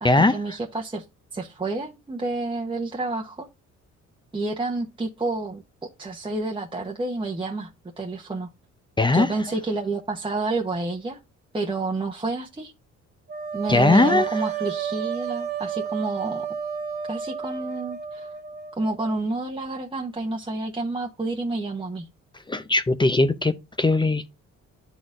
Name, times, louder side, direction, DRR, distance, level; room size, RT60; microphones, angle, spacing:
voice 1, 0.0-1.0 1.3-3.5 4.3-5.6 6.0-7.7 8.0-8.5 9.1-11.2 11.5-12.7 13.5-16.5 17.1-18.3 18.8-22.1, right 3 dB, 15° right, 0.9 m, -29 dB
sound 1, 13.3-19.2, right 8 dB, 35° right, 1.3 m, -31 dB
voice 2, 13.7-14.3 22.5-24.3, left 2 dB, 15° left, 0.6 m, -19 dB
11.0 x 4.1 x 2.5 m
cardioid pair, 90°, 30 cm